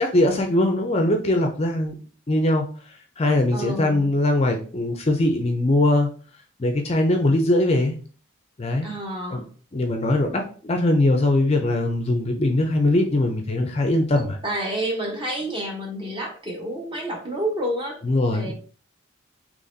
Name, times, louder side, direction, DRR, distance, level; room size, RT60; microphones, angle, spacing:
voice 1, 0.0-1.9 2.3-2.6 3.2-6.1 6.6-7.9 8.6-8.9 9.3-9.4 9.7-14.4 18.0-18.5, left 1 dB, 30° left, 4 dB, 0.4 m, -21 dB
voice 2, 3.5-4.1 8.8-9.5 14.2-18.0 18.3-18.5, right 1 dB, 25° right, 0 dB, 0.9 m, -29 dB
4.0 x 3.0 x 2.6 m, 0.41 s
head